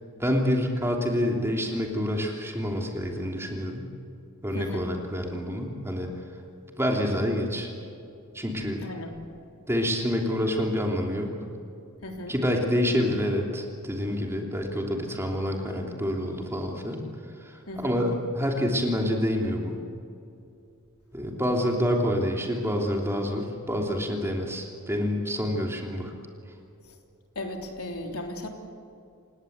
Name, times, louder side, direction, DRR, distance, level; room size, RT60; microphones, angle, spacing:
voice 1, 0.2-3.9 4.4-6.1 6.8-7.7 8.3-8.8 9.7-11.3 12.3-17.0 17.4-17.5 17.8-19.8 21.1-26.1, equal, 10° right, 1 dB, 3.0 m, -27 dB
voice 2, 4.5-4.9 8.8-9.1 12.0-12.3 17.7-18.0 26.8-27.0 27.4-28.5, left 1 dB, 80° left, 3 dB, 3.4 m, -36 dB
29.0 x 17.5 x 8.1 m, 2.6 s
head